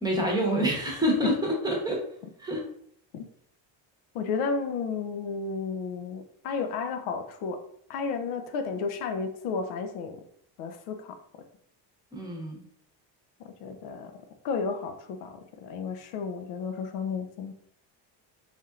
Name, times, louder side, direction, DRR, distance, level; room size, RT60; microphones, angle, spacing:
voice 1, 0.0-2.0 2.4-2.6 12.1-12.6, equal, 10° right, -1 dB, 0.9 m, -27 dB
voice 2, 4.1-7.6 7.9-10.2 10.6-11.2 13.4-14.1 14.4-17.5, left 5 dB, 90° left, 6 dB, 0.7 m, -32 dB
4.2 x 3.6 x 2.4 m, 0.65 s
cardioid pair, 135°, 47 cm